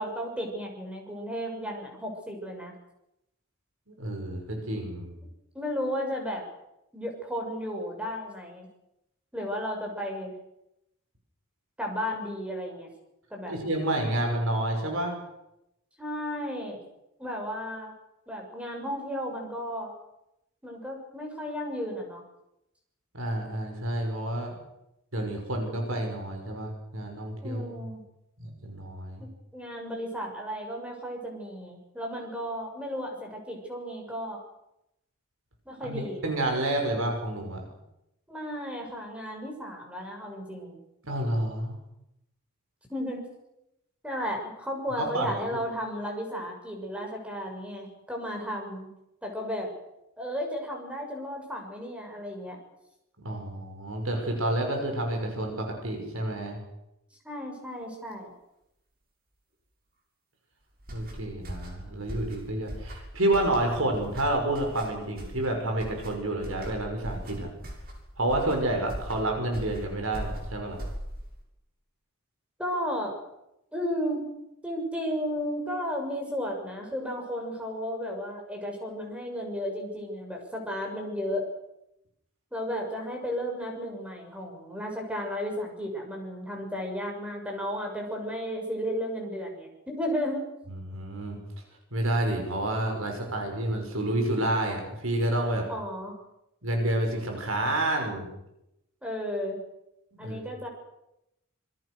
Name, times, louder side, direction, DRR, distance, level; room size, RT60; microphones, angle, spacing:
voice 1, 0.0-2.7 5.5-6.4 6.9-8.7 9.3-10.3 11.8-12.9 13.3-13.5 16.0-16.8 17.2-17.9 18.3-19.9 20.6-22.2 27.4-28.0 29.2-34.4 35.7-36.2 38.3-40.8 42.9-43.3 44.0-48.9 49.2-49.7 50.2-52.6 57.2-58.3 72.6-73.1 73.7-74.2 74.6-81.5 82.5-90.5 95.7-96.1 99.0-99.6 100.2-100.7, equal, 5° right, 1 dB, 7.1 m, -34 dB
voice 2, 3.9-5.1 13.5-15.2 23.1-24.5 25.1-27.9 28.4-29.2 35.8-37.6 41.0-41.8 45.0-45.6 53.2-56.6 60.9-67.5 68.2-70.8 90.7-91.4 91.9-95.6 96.6-98.3 100.1-100.4, right 1 dB, 75° right, 3 dB, 6.3 m, -29 dB
sound 1, 60.8-71.4, equal, 45° right, 7.1 m, -40 dB
27.0 x 23.0 x 6.5 m, 0.85 s
head